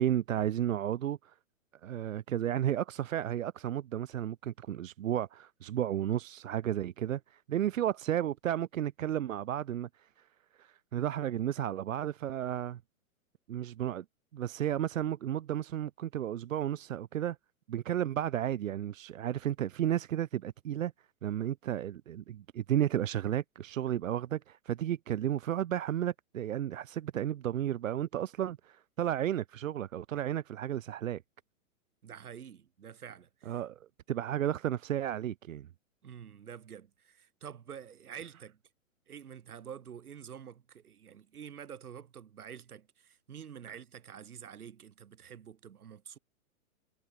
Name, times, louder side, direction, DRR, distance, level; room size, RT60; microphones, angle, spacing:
voice 1, 0.0-1.3 1.8-10.3 10.6-12.8 13.5-14.0 14.3-17.4 17.7-20.9 21.2-31.2 33.5-33.8 34.1-35.7, right 11 dB, 65° right, 0.9 m, -33 dB
voice 2, 32.0-33.6 36.0-38.6 39.1-46.2, right 8 dB, 90° right, 7.2 m, -48 dB
hypercardioid pair, 175°, 43 cm